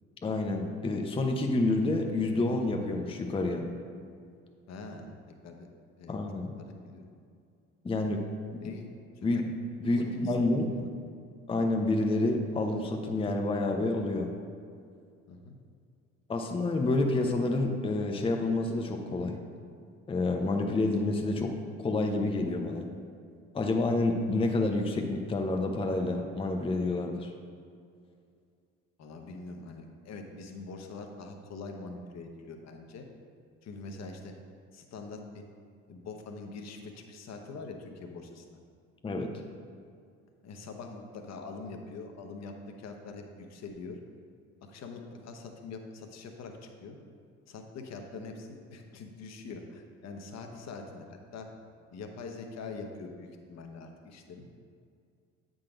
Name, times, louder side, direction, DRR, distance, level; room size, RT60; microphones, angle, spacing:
voice 1, 0.2-3.7 6.1-6.5 7.8-8.2 9.2-9.4 9.8-10.7 11.5-14.3 16.3-19.4 20.1-22.9 23.5-27.3 39.0-39.3, left 2 dB, 15° left, 3 dB, 0.7 m, -28 dB
voice 2, 4.7-5.1 5.4-5.7 6.0-6.2 6.6-7.1 8.6-9.4 9.8-10.9 15.3-15.6 29.0-33.1 33.6-34.4 34.7-35.4 35.9-38.6 40.4-44.0 44.6-47.0 47.5-51.5 51.9-54.4, left 3 dB, 40° left, 4 dB, 1.0 m, -44 dB
8.6 x 3.9 x 5.0 m, 2.3 s
hypercardioid pair, 60°, 39 cm